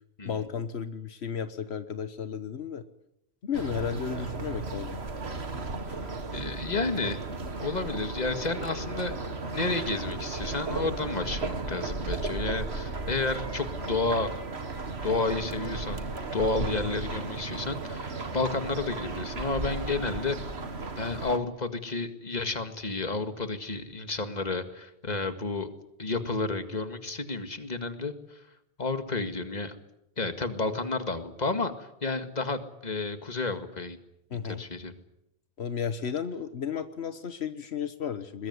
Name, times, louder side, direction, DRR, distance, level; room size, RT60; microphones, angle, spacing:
voice 1, 0.2-2.8 3.4-5.0 16.6-16.8 34.3-34.6 35.6-38.5, left 7 dB, 80° left, 11 dB, 1.4 m, -33 dB
sound 1, 3.5-21.4, right 3 dB, 80° right, 2.1 m, -35 dB
voice 2, 6.3-7.2 7.6-14.3 15.0-20.4 21.0-25.7 26.0-28.4 28.8-29.8 30.2-34.0 34.4-34.9, left 3 dB, 40° left, 8 dB, 2.1 m, -31 dB
22.0 x 21.0 x 9.5 m, 0.81 s
omnidirectional pair, 1.1 m